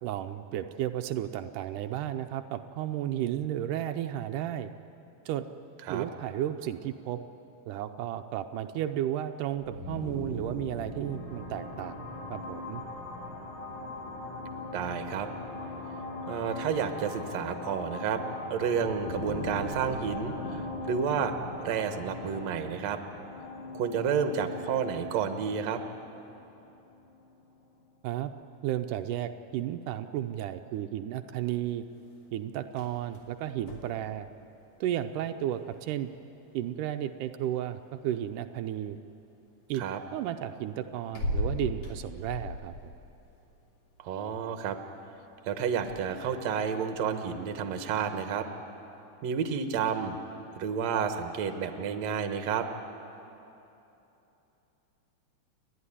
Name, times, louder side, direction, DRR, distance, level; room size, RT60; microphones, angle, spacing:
voice 1, 0.0-4.7 5.3-5.5 5.9-7.2 7.7-12.0 12.3-12.8 28.0-28.3 28.6-31.8 32.3-34.3 34.8-36.1 36.5-39.0 39.7-39.8 40.1-42.7, right 11 dB, 85° right, 7 dB, 2.2 m, -33 dB
sound 1, 9.6-27.2, left 2 dB, 90° left, 5.0 m, -40 dB
voice 2, 14.7-15.3 16.3-18.2 18.5-21.3 21.6-23.0 23.7-25.8 39.8-40.0 44.0-44.8 45.5-48.5 49.2-50.2 50.6-52.7, right 7 dB, 65° right, 7 dB, 2.2 m, -30 dB
sound 2, 31.3-48.0, left 1 dB, 55° left, 3.6 m, -43 dB
30.0 x 11.5 x 9.9 m, 2.9 s
omnidirectional pair, 3.6 m